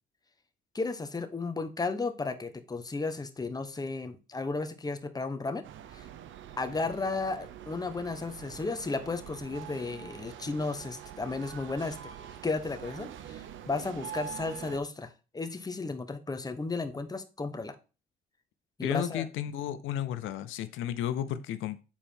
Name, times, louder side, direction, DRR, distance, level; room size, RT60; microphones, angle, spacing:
voice 1, 0.7-5.6 5.9-6.1 6.6-12.0 12.4-17.8 18.8-19.3, left 3 dB, 20° left, 8 dB, 1.0 m, -34 dB
sound 1, 5.6-14.8, right 10 dB, 75° right, 0.8 m, -45 dB
voice 2, 18.8-21.8, left 11 dB, 85° left, 12 dB, 0.6 m, -33 dB
7.3 x 4.4 x 4.3 m, 0.32 s
cardioid pair, 90°, 20 cm